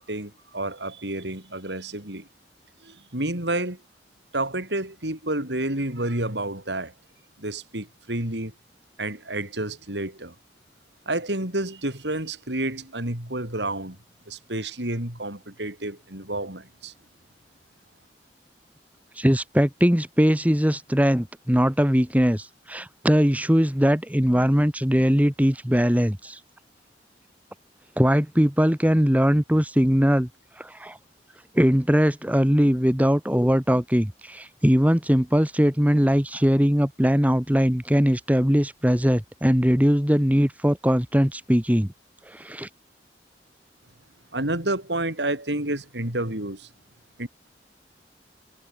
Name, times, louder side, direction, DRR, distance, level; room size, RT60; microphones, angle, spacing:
voice 1, 0.0-2.3 2.8-3.8 4.3-6.9 7.4-8.5 9.0-10.3 11.1-14.0 14.3-16.9 44.3-46.7 47.2-47.3, right 1 dB, 85° right, 7.5 m, -30 dB
voice 2, 19.1-26.4 28.0-30.3 30.6-31.0 31.5-41.9 42.3-42.7, equal, 10° right, 1.7 m, -21 dB
head